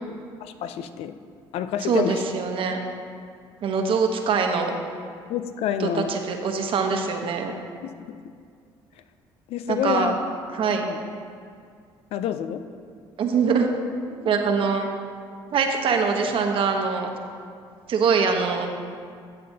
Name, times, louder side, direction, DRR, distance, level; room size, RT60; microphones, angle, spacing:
voice 1, 0.4-1.2 1.5-2.2 5.3-6.1 7.8-8.2 9.5-10.1 10.7-11.0 12.1-12.7, left 9 dB, 70° left, 11 dB, 0.5 m, -28 dB
voice 2, 1.8-2.8 3.6-4.7 5.8-7.5 9.7-10.1 10.5-10.8 13.2-13.7 14.1-14.9 15.5-17.1 17.9-18.7, right 5 dB, 55° right, 3 dB, 1.1 m, -23 dB
12.5 x 7.7 x 2.8 m, 2.2 s
supercardioid pair, 80°, 11 cm